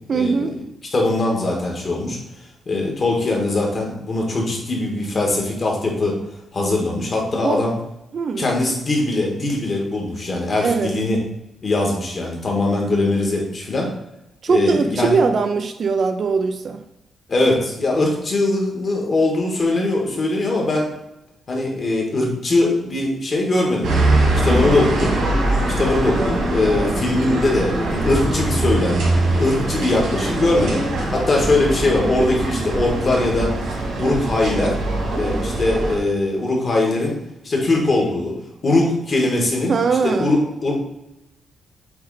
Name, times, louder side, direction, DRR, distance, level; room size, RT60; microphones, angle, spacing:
voice 1, 0.1-0.6 7.4-7.7 8.1-8.5 10.6-11.0 14.4-16.8 24.4-24.9 39.7-40.3, right 5 dB, 40° right, 7 dB, 0.4 m, -21 dB
voice 2, 0.9-2.2 2.7-6.2 6.5-7.7 8.4-11.2 11.6-13.9 14.5-15.2 17.3-20.9 21.5-24.1 24.4-25.2 25.8-29.0 29.4-30.8 31.1-33.5 34.0-34.8 35.1-37.2 37.4-38.3 38.6-39.7 40.0-40.7, left 2 dB, 35° left, -1 dB, 1.5 m, -21 dB
sound 1, 23.8-36.0, right 2 dB, 90° right, 2.3 m, -22 dB
8.0 x 3.2 x 4.0 m, 0.90 s
wide cardioid pair, 170°, 0 cm